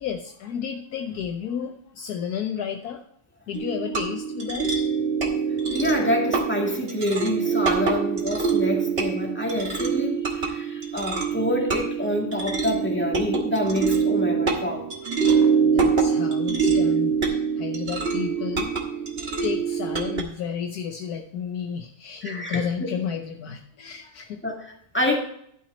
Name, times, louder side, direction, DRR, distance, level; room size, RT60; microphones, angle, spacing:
voice 1, 0.0-3.0 3.5-4.8 15.6-18.7 19.4-24.4, left 7 dB, 65° left, 4 dB, 1.0 m, -32 dB
sound 1, 3.5-20.2, right 5 dB, 35° right, 1.3 m, -25 dB
voice 2, 5.7-14.9 22.2-22.7 24.4-25.2, left 1 dB, 5° left, -1 dB, 1.7 m, -27 dB
11.5 x 6.0 x 4.3 m, 0.68 s
omnidirectional pair, 2.3 m